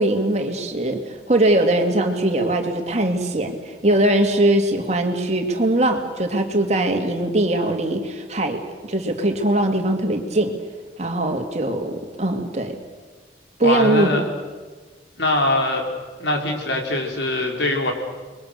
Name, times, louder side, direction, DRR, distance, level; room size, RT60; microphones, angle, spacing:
voice 1, 0.0-8.6 8.9-10.5 11.0-12.8 13.6-14.1, right 1 dB, 40° right, 4 dB, 2.5 m, -21 dB
voice 2, 13.6-14.2 15.2-15.8 16.2-17.9, left 2 dB, 85° left, 2 dB, 4.4 m, -22 dB
29.5 x 22.0 x 6.8 m, 1.4 s
head